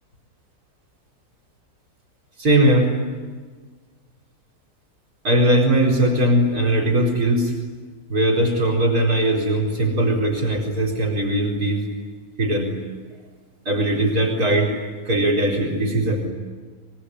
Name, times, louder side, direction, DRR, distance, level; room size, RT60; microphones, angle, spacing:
voice 1, 2.4-2.9 5.2-7.5 8.1-11.9 12.4-12.7 13.6-14.7 15.0-16.3, right 1 dB, 60° right, -1 dB, 4.8 m, -19 dB
25.0 x 22.5 x 9.8 m, 1.5 s
omnidirectional pair, 1.8 m